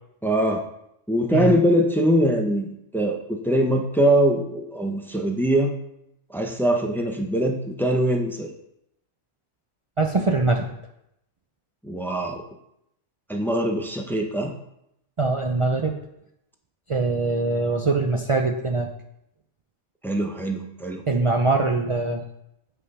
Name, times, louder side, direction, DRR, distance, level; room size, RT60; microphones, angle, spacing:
voice 1, 0.2-0.6 1.1-5.7 6.3-8.5 11.8-12.4 13.3-14.5 20.0-21.0, right 1 dB, ahead, 2 dB, 0.6 m, -22 dB
voice 2, 10.0-10.7 15.2-16.0 16.9-18.9 21.1-22.3, right 3 dB, 55° right, 2 dB, 0.3 m, -22 dB
8.3 x 5.5 x 5.5 m, 0.81 s
omnidirectional pair, 1.5 m